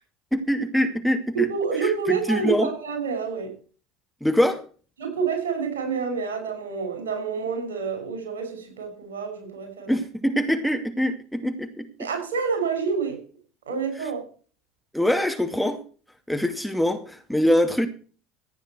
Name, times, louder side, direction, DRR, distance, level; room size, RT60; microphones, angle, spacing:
voice 1, 0.3-1.5 1.8-2.7 4.2-4.6 9.9-11.9 14.9-15.8 16.3-17.9, equal, ahead, 2.3 m, -23 dB
voice 2, 1.5-3.5 5.0-10.0 12.0-13.2 13.7-14.3, right 5 dB, 80° right, 6.3 m, -28 dB
15.5 x 9.2 x 4.7 m
hypercardioid pair, 70°, 0 cm